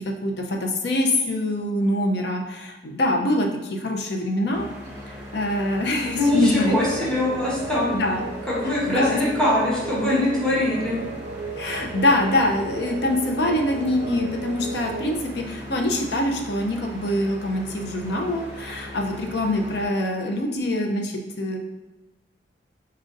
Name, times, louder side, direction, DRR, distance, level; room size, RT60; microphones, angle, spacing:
voice 1, 0.0-4.7 5.3-7.1 7.9-8.3 8.9-9.2 11.6-21.6, left 1 dB, 65° left, 2 dB, 0.6 m, -24 dB
sound 1, 4.5-19.9, equal, 15° right, 1.4 m, -39 dB
sound 2, 6.0-15.1, right 3 dB, 45° right, 0.5 m, -36 dB
voice 2, 6.2-7.9 8.5-10.9, left 1 dB, 5° left, -8 dB, 1.2 m, -22 dB
4.2 x 3.7 x 2.5 m, 1.1 s
head